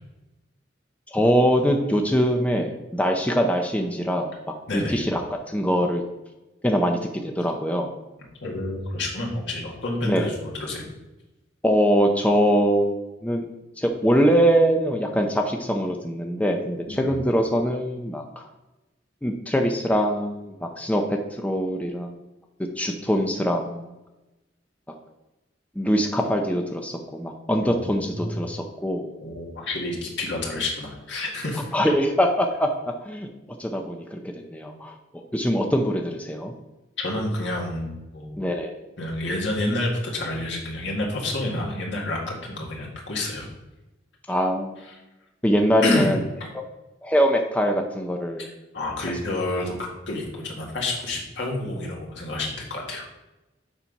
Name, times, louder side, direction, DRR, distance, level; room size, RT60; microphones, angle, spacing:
voice 1, 1.1-6.0 6.6-7.0 7.4-7.9 10.0-10.3 11.6-13.4 13.8-18.4 19.2-22.1 22.8-23.9 25.8-29.1 31.7-32.7 33.0-33.3 33.6-34.2 34.5-36.5 38.4-38.7 44.3-44.8 45.4-46.2 47.0-48.5, equal, 10° left, 3 dB, 0.6 m, -23 dB
voice 2, 4.7-5.0 8.4-10.9 16.9-17.2 27.6-28.4 29.2-31.8 37.0-38.4 39.0-43.5 44.8-45.0 45.8-46.1 46.4-46.5 48.4-53.2, left 1 dB, 75° left, -2 dB, 1.9 m, -29 dB
7.1 x 4.3 x 5.3 m, 1.0 s
head